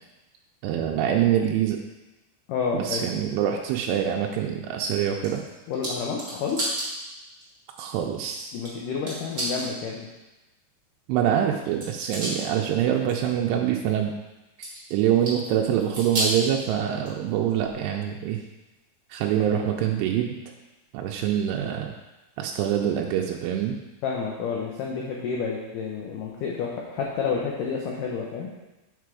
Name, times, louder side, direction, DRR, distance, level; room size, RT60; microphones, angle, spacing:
voice 1, 0.6-1.8 2.7-5.4 7.8-8.5 11.1-14.1 14.9-18.4 19.1-20.4 20.9-21.9 22.4-23.8, right 10 dB, 90° right, 1 dB, 2.7 m, -25 dB
voice 2, 2.5-3.1 5.7-6.6 8.5-10.1 24.0-28.5, left 5 dB, 85° left, -2 dB, 1.9 m, -29 dB
sound 1, 5.0-6.9 7.4-7.5 8.6-8.7 9.1-9.7 11.5-12.5 12.9-13.2 14.6-15.5 15.8-16.4 17.0-17.9 18.3-18.4 19.3-19.4, right 1 dB, 50° right, 1.1 m, -31 dB
6.8 x 4.5 x 4.7 m, 1.1 s
omnidirectional pair, 4.7 m